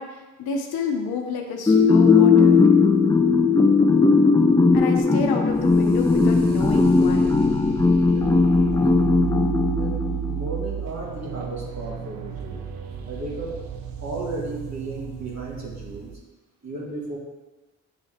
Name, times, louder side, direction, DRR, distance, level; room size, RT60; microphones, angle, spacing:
voice 1, 0.0-2.6 4.7-7.3, left 4 dB, 75° left, 3 dB, 0.9 m, -30 dB
sound 1, 1.7-10.4, left 4 dB, 10° left, 0.5 m, -18 dB
sound 2, 5.5-16.2, right 7 dB, 70° right, 0.7 m, -33 dB
voice 2, 8.7-9.4 9.7-12.6 13.1-13.6 14.0-16.2 16.6-17.2, right 2 dB, 45° right, -3 dB, 2.0 m, -34 dB
8.1 x 3.5 x 3.4 m, 1.2 s
supercardioid pair, 40°, 37 cm